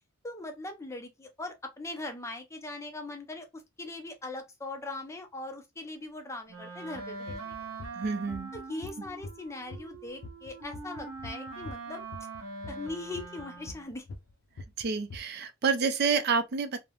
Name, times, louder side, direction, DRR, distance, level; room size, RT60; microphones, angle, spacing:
voice 1, 0.2-3.5 3.8-7.5 8.5-12.0 12.7-14.0, left 2 dB, 15° left, 0.5 m, -40 dB
Wind instrument woodwind instrument, 6.5-13.9, right 3 dB, 85° right, 0.8 m, -43 dB
sound 1, 6.9-9.4 9.7-11.7 12.1-14.3 14.6-15.2, left 2 dB, 70° left, 0.4 m, -43 dB
voice 2, 7.9-8.5 14.8-16.8, right 5 dB, 50° right, 0.4 m, -28 dB
3.1 x 2.0 x 2.3 m
head